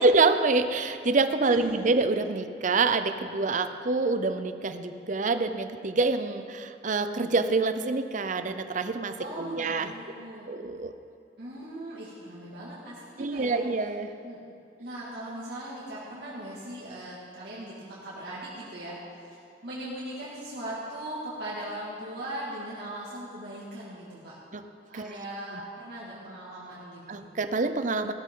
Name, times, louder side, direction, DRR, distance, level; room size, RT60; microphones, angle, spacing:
voice 1, 0.0-9.9 10.5-10.9 13.2-14.1 24.5-24.6 24.9-25.1 27.1-28.1, right 3 dB, 45° right, 9 dB, 0.6 m, -26 dB
voice 2, 1.5-1.9 9.2-10.5 11.4-13.6 14.2-14.4 14.8-19.0 19.6-24.4 24.9-27.2, right 1 dB, 65° right, -8 dB, 2.2 m, -39 dB
16.5 x 13.0 x 3.8 m, 2.5 s
head